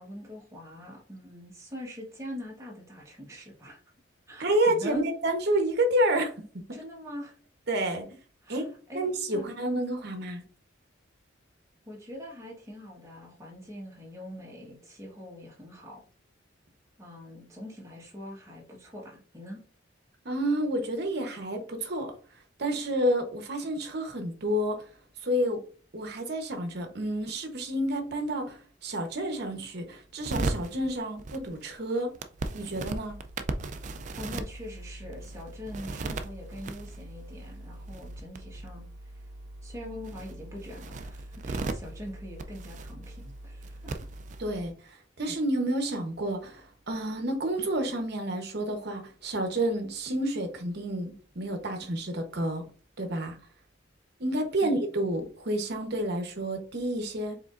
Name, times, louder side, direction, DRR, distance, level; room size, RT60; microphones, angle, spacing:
voice 1, 0.0-3.8 4.3-5.1 6.7-7.4 8.4-9.0 9.3-9.5 11.9-16.1 17.0-19.6 34.2-38.8 39.1-39.2 39.6-43.9 54.6-54.8, left 1 dB, 15° right, 1.2 m, -43 dB
voice 2, 4.4-6.3 6.7-6.8 7.7-8.1 8.5-8.7 8.9-10.4 20.2-22.1 22.6-24.9 25.2-25.6 25.9-32.1 32.5-33.2 44.4-52.6 53.0-53.4 54.2-57.4, right 1 dB, 55° right, 0.9 m, -29 dB
sound 1, 30.2-44.7, right 2 dB, 40° right, 0.3 m, -38 dB
4.7 x 3.8 x 2.5 m
head